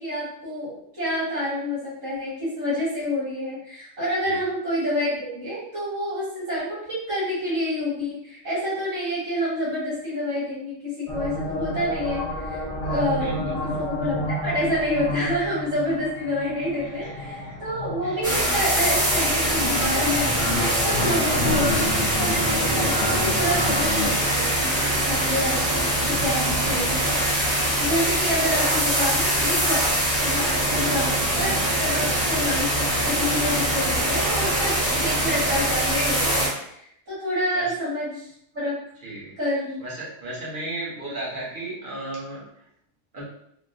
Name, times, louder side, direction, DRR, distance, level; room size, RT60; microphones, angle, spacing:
voice 1, 0.0-13.5 13.8-25.8 26.1-38.8 39.4-39.8, left 1 dB, 70° right, -10 dB, 1.7 m, -28 dB
sound 1, 11.1-24.1, left 1 dB, 40° left, 0.6 m, -31 dB
voice 2, 13.2-13.6 16.8-17.5 18.0-18.2 21.5-21.7 30.7-30.9 31.9-32.1 37.5-37.7 39.0-39.3 39.8-42.4 43.1-43.2, right 2 dB, 45° right, -6 dB, 1.1 m, -35 dB
sound 2, 18.2-36.5, right 1 dB, 20° right, 1.3 m, -23 dB
3.5 x 2.1 x 2.5 m, 0.73 s
omnidirectional pair, 1.3 m